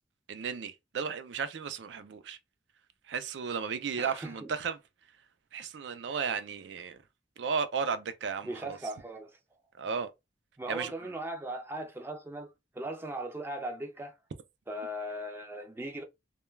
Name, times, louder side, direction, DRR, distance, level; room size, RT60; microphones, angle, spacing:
voice 1, 0.3-2.4 3.1-4.8 5.5-7.0 7.4-8.8 9.8-10.1 10.7-10.9, right 6 dB, 80° right, 0.4 m, -34 dB
voice 2, 4.0-4.5 8.4-9.4 10.6-14.1 14.7-16.0, right 1 dB, 15° right, 0.4 m, -38 dB
2.2 x 2.2 x 3.1 m
head